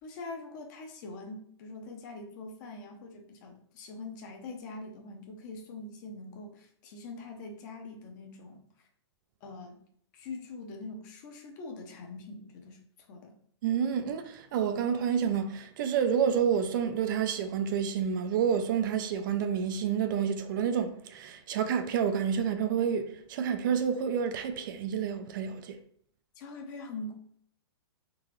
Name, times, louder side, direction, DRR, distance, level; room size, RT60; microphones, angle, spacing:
voice 1, 0.0-8.6 9.4-9.8 10.1-12.8 13.1-13.3 26.4-27.1, left 3 dB, 40° left, 0.8 m, -43 dB
voice 2, 13.6-25.8, right 7 dB, 45° right, 0.4 m, -29 dB
3.7 x 2.8 x 3.1 m
hypercardioid pair, 150°, 14 cm